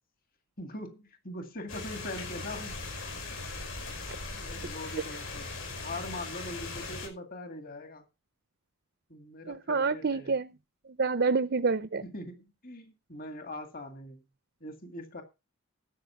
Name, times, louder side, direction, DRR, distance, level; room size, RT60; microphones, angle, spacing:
voice 1, 0.6-2.8 3.3-3.4 4.3-5.5 5.8-8.0 9.1-10.3 12.0-14.2 14.6-15.2, left 1 dB, 40° left, 2.1 m, -42 dB
sound 1, 1.7-7.1, left 3 dB, 65° left, 5.5 m, -39 dB
voice 2, 9.5-10.5 11.0-12.0, right 4 dB, 50° right, 0.6 m, -27 dB
12.5 x 7.8 x 5.7 m
head